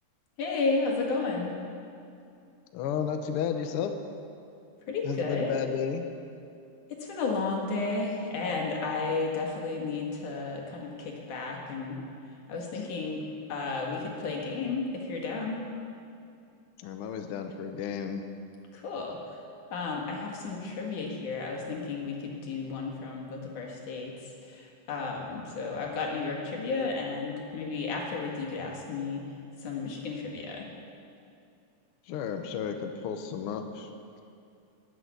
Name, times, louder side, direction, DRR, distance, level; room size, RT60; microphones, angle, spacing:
voice 1, 0.4-1.6 4.9-5.5 6.9-12.0 12.5-13.2 13.5-15.6 18.7-19.2 19.7-24.1 24.4-29.2 29.6-30.7, left 4 dB, 85° left, -1 dB, 3.4 m, -33 dB
voice 2, 2.7-3.9 5.0-6.1 12.7-12.9 16.8-18.2 32.1-33.9, left 7 dB, 65° left, 6 dB, 1.5 m, -32 dB
14.0 x 7.8 x 9.6 m, 2.5 s
omnidirectional pair, 3.4 m